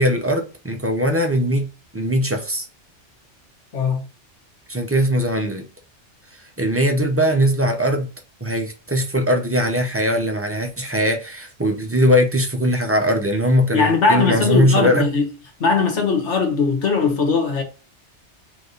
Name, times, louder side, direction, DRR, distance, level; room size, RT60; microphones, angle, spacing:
voice 1, 0.0-1.7 1.9-2.6 4.7-5.6 6.6-8.1 8.4-15.0, equal, 15° right, 0.7 m, -20 dB
voice 2, 13.7-15.2 15.6-17.6, left 4 dB, 80° left, 1.6 m, -19 dB
3.5 x 3.5 x 3.9 m
omnidirectional pair, 1.2 m